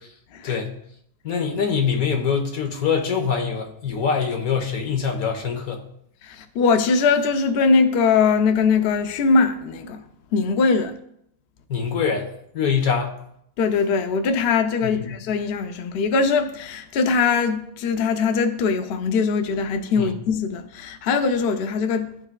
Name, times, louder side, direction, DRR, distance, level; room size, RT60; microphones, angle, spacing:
voice 1, 0.4-0.8 1.2-5.8 11.7-12.2 12.5-13.1 14.8-15.2 20.0-20.1, left 6 dB, 90° left, 1.5 m, -24 dB
voice 2, 6.2-10.0 10.3-11.0 13.6-22.1, left 5 dB, 60° left, 0.7 m, -21 dB
13.0 x 4.9 x 2.2 m
omnidirectional pair, 1.5 m